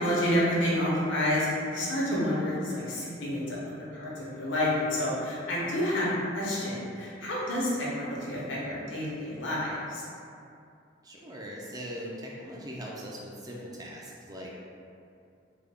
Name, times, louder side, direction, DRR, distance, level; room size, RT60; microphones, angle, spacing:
voice 1, 0.0-10.0, left 1 dB, 80° left, -6 dB, 0.9 m, -29 dB
voice 2, 11.0-14.5, equal, 20° right, -3 dB, 0.4 m, -40 dB
3.5 x 2.2 x 3.4 m, 2.5 s
head